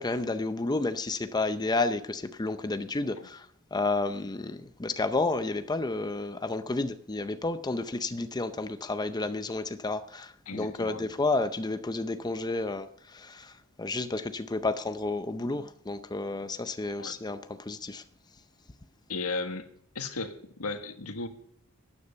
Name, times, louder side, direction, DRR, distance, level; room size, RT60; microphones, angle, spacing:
voice 1, 0.0-18.0, left 3 dB, 20° left, 0.5 m, -31 dB
voice 2, 10.5-11.1 17.0-17.1 19.1-19.7 19.9-21.3, left 3 dB, 90° left, 1.5 m, -35 dB
13.5 x 9.7 x 5.5 m
head